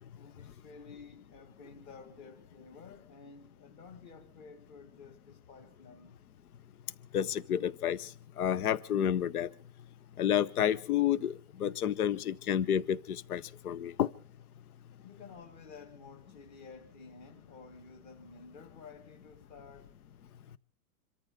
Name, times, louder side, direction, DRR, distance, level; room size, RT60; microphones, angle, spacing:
voice 1, 0.1-6.2 15.0-19.9, left 4 dB, 25° left, 1.6 m, -52 dB
voice 2, 7.1-8.1 8.4-9.5 10.2-14.1, left 10 dB, 75° left, 1.0 m, -30 dB
27.0 x 14.0 x 3.8 m
hypercardioid pair, 170°, 45 cm